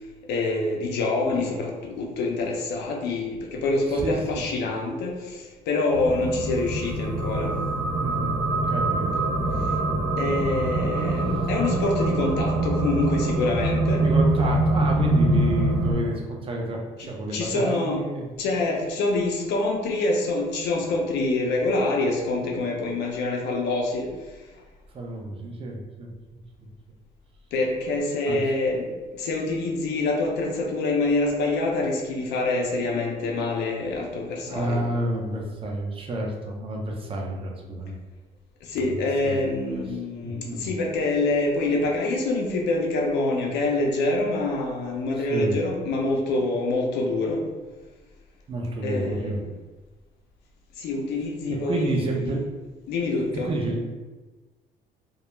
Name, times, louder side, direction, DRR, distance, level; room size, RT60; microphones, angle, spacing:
voice 1, 0.3-7.5 10.2-14.0 17.0-18.0 18.4-24.1 27.5-34.8 38.7-47.5 48.8-49.4 50.8-52.4 52.9-53.5, left 2 dB, 85° left, 0 dB, 0.6 m, -26 dB
sound 1, 5.9-15.9, right 2 dB, 80° right, 0.6 m, -24 dB
voice 2, 7.9-8.3 8.7-10.6 11.3-11.5 14.0-18.2 24.9-26.1 26.6-26.7 28.3-28.4 34.5-38.0 38.8-38.9 39.2-39.5 39.9-40.0 40.2-40.7 45.2-45.6 48.5-49.4 51.5-52.5 53.3-53.9, right 1 dB, 35° right, 0 dB, 0.5 m, -30 dB
2.3 x 2.1 x 3.0 m, 1.3 s
cardioid pair, 110°, 17 cm